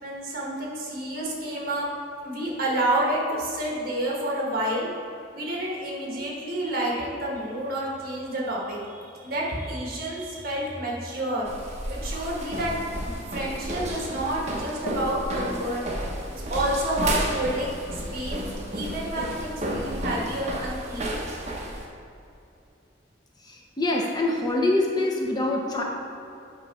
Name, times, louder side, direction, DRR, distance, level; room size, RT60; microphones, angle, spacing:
voice 1, 0.0-1.9 2.2-4.9 5.3-11.5 12.0-12.7 13.3-15.8 16.3-17.8 18.1-18.4 18.7-21.2, right 1 dB, 55° right, -4 dB, 1.5 m, -29 dB
sound 1, 11.5-21.9, right 1 dB, 40° right, 0.9 m, -32 dB
voice 2, 23.8-25.8, left 2 dB, 20° left, -1 dB, 0.7 m, -24 dB
8.8 x 3.1 x 5.5 m, 2.7 s
head